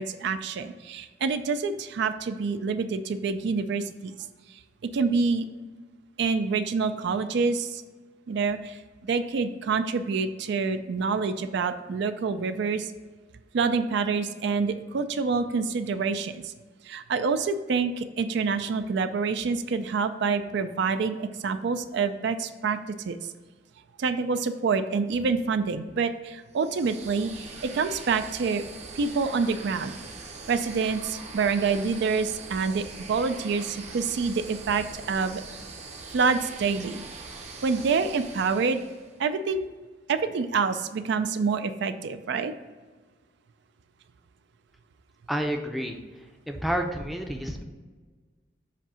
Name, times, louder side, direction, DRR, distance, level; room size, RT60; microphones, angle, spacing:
voice 1, 0.0-4.1 4.9-5.4 6.2-7.8 8.3-12.9 13.5-16.5 16.9-22.8 23.1-23.2 24.0-28.6 28.9-29.9 30.5-35.4 36.1-37.0 37.6-38.8 39.2-39.7 40.1-42.5, right 5 dB, 65° right, 10 dB, 0.4 m, -27 dB
sound 1, 26.5-39.2, right 3 dB, 35° right, 0.7 m, -42 dB
voice 2, 45.3-46.0 46.5-47.6, equal, ahead, 3 dB, 0.5 m, -29 dB
7.4 x 2.7 x 5.5 m, 1.4 s
head